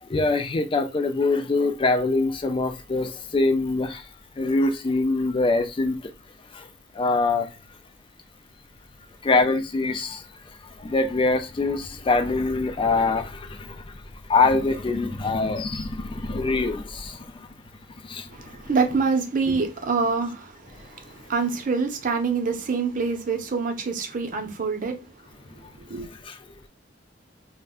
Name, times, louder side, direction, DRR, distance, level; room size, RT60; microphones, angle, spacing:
voice 1, 0.0-4.1 4.4-6.1 6.5-6.7 6.9-7.5 9.2-10.2 10.8-14.0 14.3-17.5 18.0-18.3 25.6-25.7 26.2-26.4, left 3 dB, 30° left, 0.4 m, -24 dB
voice 2, 18.3-25.0 25.8-26.1, right 4 dB, 45° right, 0.6 m, -26 dB
2.4 x 2.1 x 3.5 m
head